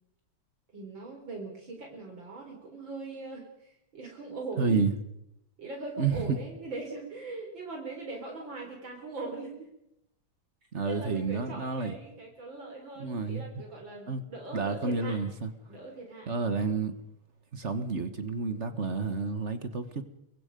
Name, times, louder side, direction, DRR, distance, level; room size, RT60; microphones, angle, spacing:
voice 1, 0.7-4.8 5.6-9.7 10.8-15.2 15.7-16.4, right 3 dB, 65° right, 4.4 m, -41 dB
voice 2, 4.6-4.9 6.0-6.4 10.7-12.0 13.0-13.5 14.1-14.2 14.5-15.5 16.3-17.0 17.5-20.0, right 4 dB, 35° right, 1.6 m, -30 dB
24.0 x 23.5 x 5.3 m
omnidirectional pair, 2.3 m